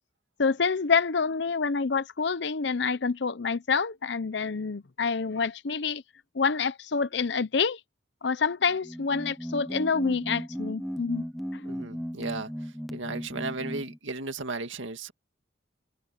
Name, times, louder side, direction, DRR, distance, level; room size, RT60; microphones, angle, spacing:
voice 1, 0.4-6.0 6.3-7.8 8.2-11.2 11.5-11.6, left 5 dB, 65° left, 0.7 m, -27 dB
sound 1, 8.7-14.0, equal, ahead, 0.7 m, -36 dB
voice 2, 11.6-12.5 12.9-15.1, right 3 dB, 85° right, 2.1 m, -35 dB
head